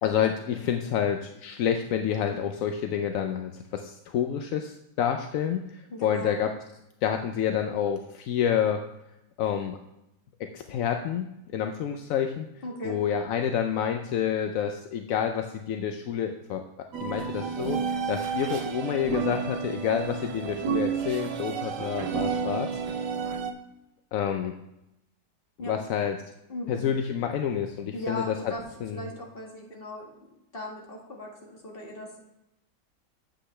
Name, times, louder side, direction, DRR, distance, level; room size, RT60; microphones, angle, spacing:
voice 1, 0.0-6.5 7.0-8.8 9.4-9.8 10.5-12.5 12.8-22.7 24.1-24.5 25.7-26.2 26.7-28.4 28.8-29.1, left 8 dB, 70° left, 5 dB, 0.8 m, -28 dB
voice 2, 5.9-6.3 12.6-13.0 25.6-25.8 26.5-26.8 27.9-28.6 28.9-30.1 30.5-32.3, left 1 dB, 35° left, -2 dB, 2.1 m, -38 dB
sound 1, 16.9-23.5, right 6 dB, 75° right, 1.4 m, -31 dB
8.5 x 7.8 x 3.3 m, 0.85 s
omnidirectional pair, 1.9 m